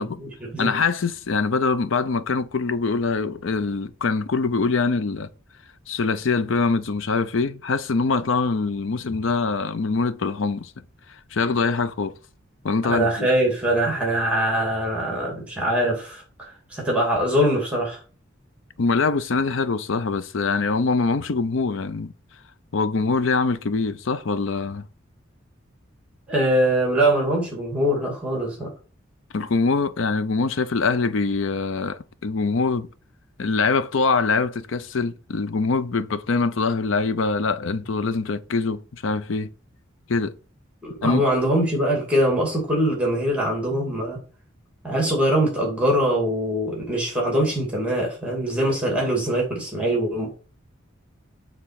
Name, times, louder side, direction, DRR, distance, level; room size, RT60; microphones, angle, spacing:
voice 1, 0.0-0.7 12.8-16.2 16.7-18.0 26.3-28.7 40.8-44.2 44.8-50.3, right 1 dB, 5° right, 2.3 m, -23 dB
voice 2, 0.6-5.3 5.9-10.7 11.3-12.2 12.6-13.3 18.8-22.1 22.7-24.9 29.3-32.9 33.4-39.5 40.1-40.3 41.0-41.3, left 4 dB, 70° left, 0.6 m, -23 dB
7.7 x 3.6 x 5.8 m
head